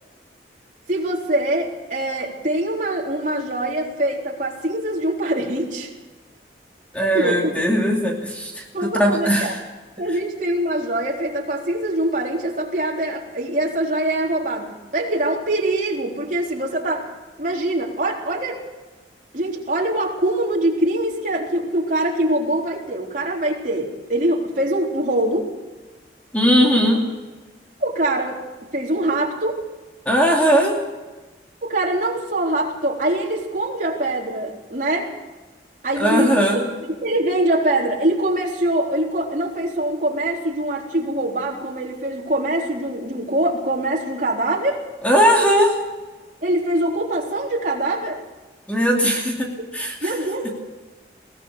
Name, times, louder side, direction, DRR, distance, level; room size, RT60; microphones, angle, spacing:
voice 1, 0.9-5.9 7.1-7.7 8.7-9.5 10.0-18.6 19.3-25.5 27.8-28.4 28.7-29.6 31.6-35.1 35.8-36.6 36.9-44.8 46.4-48.2 50.0-50.5, right 1 dB, 45° right, -1 dB, 3.9 m, -23 dB
voice 2, 6.9-9.6 26.3-27.0 30.1-30.8 36.0-36.6 45.0-45.8 48.7-50.1, equal, 10° left, 0 dB, 2.7 m, -19 dB
22.0 x 17.5 x 6.7 m, 1.3 s
head